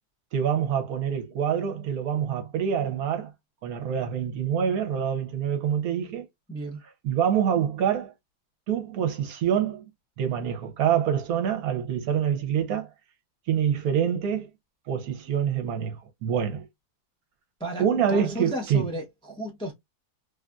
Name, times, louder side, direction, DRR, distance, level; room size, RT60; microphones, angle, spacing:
voice 1, 0.3-3.3 3.6-6.3 7.0-8.1 8.7-9.8 10.2-12.9 13.5-14.5 14.9-16.6 17.8-18.9, right 8 dB, 70° right, 1.1 m, -26 dB
voice 2, 6.5-6.8 17.6-19.7, equal, 5° left, 0.4 m, -33 dB
3.2 x 2.5 x 2.2 m
omnidirectional pair, 1.7 m